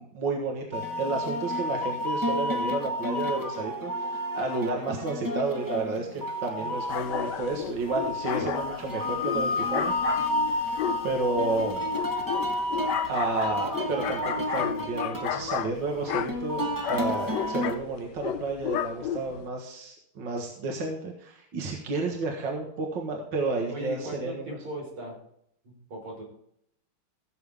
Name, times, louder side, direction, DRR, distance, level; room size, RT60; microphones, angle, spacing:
voice 1, 0.0-9.9 10.5-10.7 11.0-11.9 13.1-24.6, right 3 dB, 60° right, 1 dB, 2.2 m, -31 dB
sound 1, 0.7-17.8, left 1 dB, 10° right, 1.0 m, -31 dB
sound 2, 6.9-19.5, left 10 dB, 70° left, 1.1 m, -34 dB
voice 2, 23.7-25.2 25.6-26.2, right 1 dB, 85° right, -1 dB, 5.5 m, -38 dB
16.0 x 7.3 x 3.5 m, 0.72 s
omnidirectional pair, 2.3 m